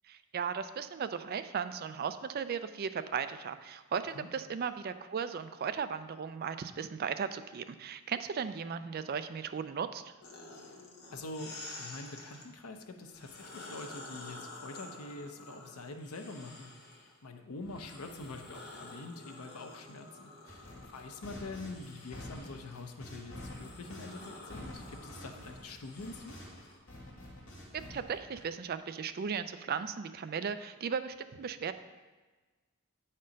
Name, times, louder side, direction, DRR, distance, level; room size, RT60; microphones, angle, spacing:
voice 1, 0.1-10.1 27.7-31.7, right 6 dB, 45° right, 11 dB, 0.3 m, -36 dB
sound 1, 10.2-12.5 13.1-17.2 17.6-26.8, left 2 dB, 45° left, 1.2 m, -50 dB
voice 2, 10.5-10.8 11.1-16.7 17.0-26.4, left 2 dB, 85° left, 5 dB, 0.7 m, -45 dB
sound 2, 20.5-26.6 26.9-28.4, left 1 dB, 70° left, 1.9 m, -48 dB
8.4 x 4.3 x 5.1 m, 1.3 s
head